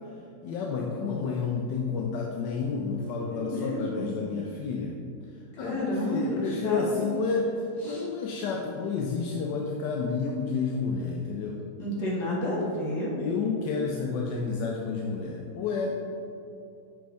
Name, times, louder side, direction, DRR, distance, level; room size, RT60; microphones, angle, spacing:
voice 1, 0.4-4.9 5.6-7.4 7.8-11.6 13.2-15.9, left 5 dB, 85° left, -1 dB, 1.3 m, -30 dB
voice 2, 3.2-4.2 5.6-7.1 7.8-8.0 11.8-13.1, left 1 dB, 65° left, -5 dB, 2.1 m, -31 dB
7.8 x 5.2 x 3.4 m, 2.7 s
omnidirectional pair, 1.9 m